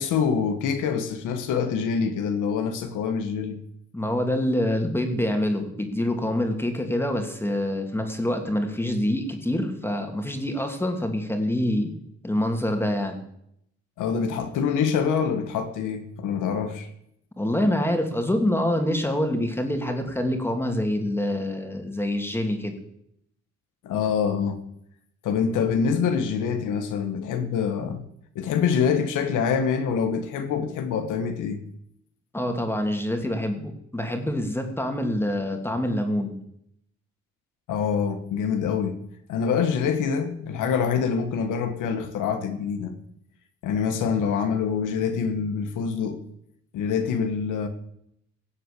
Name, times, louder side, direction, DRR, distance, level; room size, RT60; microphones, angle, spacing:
voice 1, 0.0-3.6 14.0-16.9 23.8-24.6 25.2-28.0 28.3-31.6 37.7-39.0 39.3-43.0 43.6-46.2 46.7-47.7, left 6 dB, 85° left, 1.5 m, -25 dB
voice 2, 3.9-11.9 12.2-13.2 17.4-22.7 32.3-36.4, left 1 dB, 10° left, 2.6 m, -26 dB
17.0 x 7.7 x 6.8 m
cardioid pair, 90°, 30 cm